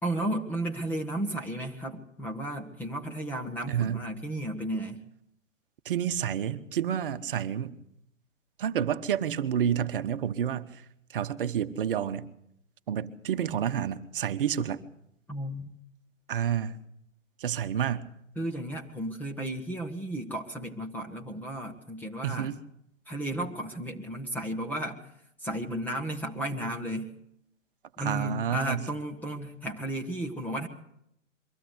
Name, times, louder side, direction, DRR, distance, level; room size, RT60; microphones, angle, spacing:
voice 1, 0.0-5.0 15.3-15.8 18.4-22.5 23.1-25.0 25.4-27.1 28.0-30.7, right 1 dB, 5° left, 1 dB, 0.8 m, -33 dB
voice 2, 3.7-4.0 5.8-7.8 8.6-10.8 11.1-12.3 12.9-14.8 16.3-16.8 17.4-18.1 22.2-22.6 28.0-28.9, right 9 dB, 45° right, 11 dB, 1.1 m, -29 dB
23.0 x 15.5 x 8.0 m, 0.77 s
figure-of-eight pair, 135°, 39 cm